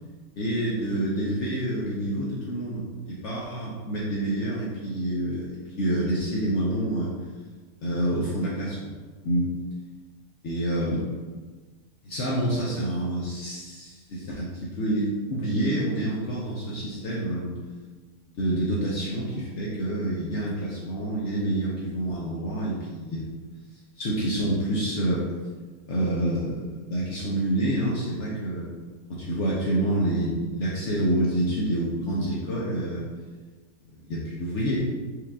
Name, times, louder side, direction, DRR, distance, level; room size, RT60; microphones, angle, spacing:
voice 1, 0.3-7.1 7.8-8.9 9.2-9.6 10.4-11.0 12.0-17.5 18.3-23.3 24.0-25.3 25.9-28.7 29.1-33.1 34.0-34.8, right 1 dB, 60° left, -5 dB, 0.9 m, -27 dB
4.7 x 2.5 x 3.5 m, 1.4 s
omnidirectional pair, 1.6 m